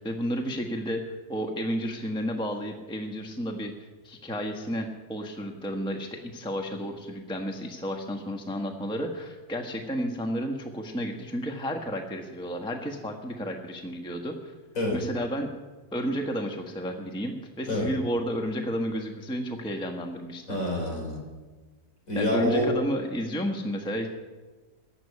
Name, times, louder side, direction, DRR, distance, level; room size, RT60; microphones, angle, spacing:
voice 1, 0.0-14.5 14.9-15.5 15.9-20.6 22.1-24.1, equal, 5° left, 3 dB, 1.0 m, -32 dB
voice 2, 20.5-21.2 22.1-22.7, left 1 dB, 55° left, 0 dB, 4.2 m, -27 dB
15.0 x 6.9 x 9.7 m, 1.3 s
omnidirectional pair, 1.7 m